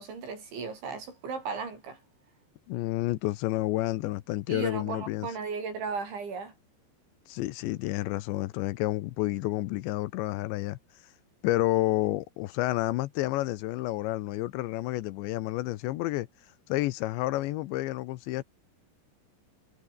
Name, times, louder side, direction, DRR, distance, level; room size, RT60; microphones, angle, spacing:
voice 1, 0.0-2.0 4.5-6.5, right 5 dB, 70° right, 9.6 m, -36 dB
voice 2, 2.7-5.3 7.3-10.8 11.4-16.3 16.7-18.4, left 17 dB, 80° left, 3.0 m, -30 dB
omnidirectional pair, 5.5 m